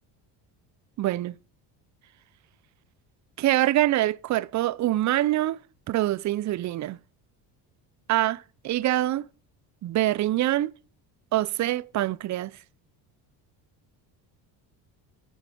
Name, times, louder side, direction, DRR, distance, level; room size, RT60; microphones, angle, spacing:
voice 1, 1.0-1.3 3.4-5.6 5.9-7.0 8.1-9.3 9.8-10.7 11.3-12.5, right 14 dB, 40° right, 0.5 m, -25 dB
9.1 x 7.0 x 8.4 m
supercardioid pair, 85°, 48 cm